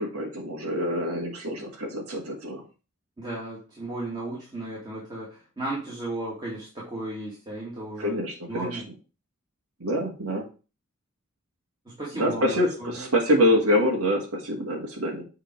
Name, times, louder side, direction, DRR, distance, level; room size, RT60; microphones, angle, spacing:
voice 1, 0.0-2.6 8.0-8.8 9.8-10.5 12.1-15.2, equal, 85° right, -1 dB, 1.8 m, -25 dB
voice 2, 3.2-8.2 8.5-8.9 11.9-13.1, right 2 dB, 20° right, -6 dB, 2.3 m, -35 dB
8.0 x 3.8 x 4.5 m, 0.33 s
head